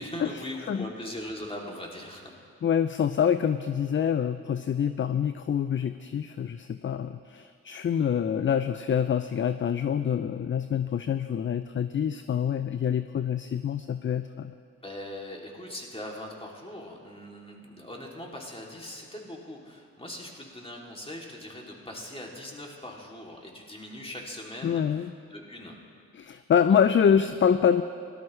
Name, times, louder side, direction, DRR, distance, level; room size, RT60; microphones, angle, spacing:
voice 1, 0.0-2.3 14.8-25.8, left 1 dB, 15° left, -1 dB, 2.9 m, -40 dB
voice 2, 2.6-14.5 24.6-25.1 26.1-27.8, left 8 dB, 35° left, 11 dB, 0.5 m, -26 dB
18.0 x 12.5 x 3.3 m, 2.4 s
supercardioid pair, 45°, 33 cm